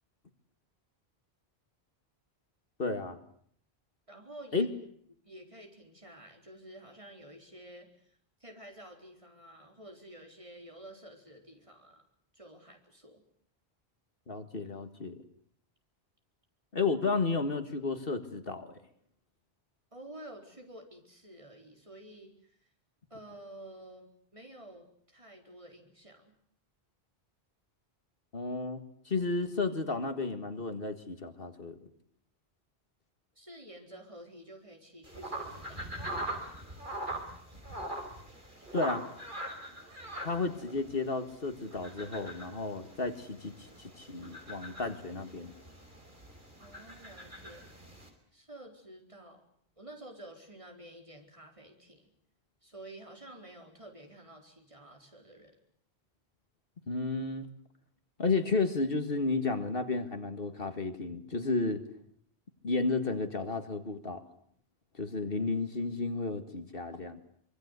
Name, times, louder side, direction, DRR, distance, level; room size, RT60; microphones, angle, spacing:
voice 1, 2.8-3.2 4.5-4.7 14.3-15.2 16.7-18.7 28.3-31.9 38.7-39.1 40.2-45.5 56.9-57.5 58.2-61.8 62.6-64.2 65.0-67.2, left 3 dB, 60° left, 8 dB, 2.0 m, -32 dB
voice 2, 4.1-4.7 5.2-12.0 12.3-13.2 19.9-22.6 23.1-26.3 33.4-36.1 46.6-47.7 48.3-49.4 49.8-52.1 52.6-55.6, right 1 dB, 30° right, 2 dB, 4.5 m, -50 dB
sound 1, 35.0-48.1, right 1 dB, 50° right, 5.0 m, -42 dB
25.0 x 24.0 x 8.2 m, 0.64 s
omnidirectional pair, 1.1 m